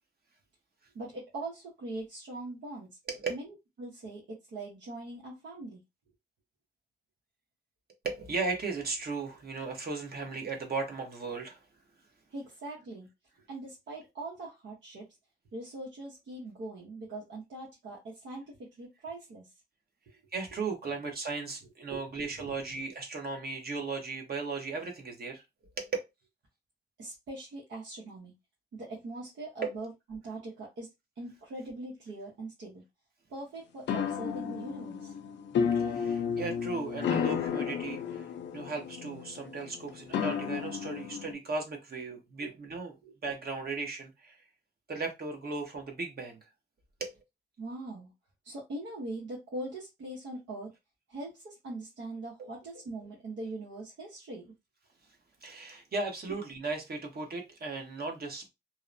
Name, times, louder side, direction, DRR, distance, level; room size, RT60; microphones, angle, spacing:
voice 1, 0.9-2.9 3.3-5.8 12.3-13.1 13.5-15.0 15.5-19.5 20.8-20.9 21.9-22.0 22.4-22.5 27.0-28.3 28.7-30.9 31.2-32.8 33.3-35.1 42.4-42.5 43.0-43.1 47.6-48.1 48.4-50.7 51.1-54.5, right 2 dB, 75° right, 1.0 m, -41 dB
voice 2, 8.0-11.6 20.3-25.4 25.8-26.0 29.6-29.7 35.7-38.3 38.5-42.9 43.2-44.4 44.9-46.4 47.0-47.1 52.4-52.5 55.4-58.5, right 4 dB, 55° right, 1.0 m, -36 dB
sound 1, 33.9-41.3, left 7 dB, 70° left, 0.5 m, -32 dB
2.8 x 2.0 x 2.5 m
cardioid pair, 60°, 19 cm